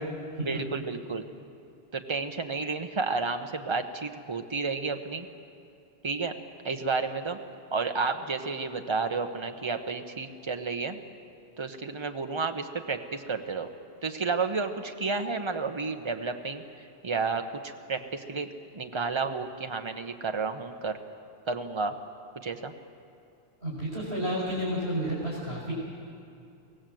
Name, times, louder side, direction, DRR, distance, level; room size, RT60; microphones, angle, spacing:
voice 1, 0.4-1.2 1.9-5.3 6.0-6.3 6.6-7.4 7.7-11.0 11.6-13.7 14.0-16.6 17.0-18.5 18.7-21.0 21.5-21.9 22.4-22.7, right 4 dB, 30° right, 6 dB, 1.0 m, -31 dB
voice 2, 23.6-25.7, equal, 60° right, -5 dB, 5.2 m, -31 dB
23.5 x 17.5 x 7.8 m, 2.6 s
omnidirectional pair, 1.1 m